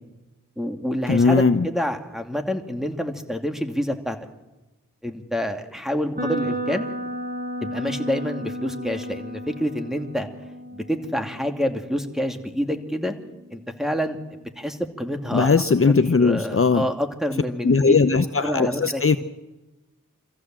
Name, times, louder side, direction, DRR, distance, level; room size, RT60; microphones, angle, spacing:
voice 1, 0.6-4.2 5.0-6.8 7.6-10.3 10.7-13.1 13.5-14.2 14.6-15.5 15.9-17.9 18.4-19.0, equal, ahead, 5 dB, 2.6 m, -27 dB
voice 2, 1.1-1.7 15.3-16.8 17.6-19.2, left 4 dB, 40° left, 9 dB, 0.9 m, -19 dB
sound 1, 6.1-14.1, equal, 30° right, 5.3 m, -34 dB
25.5 x 15.0 x 7.6 m, 1.1 s
cardioid pair, 40°, 33 cm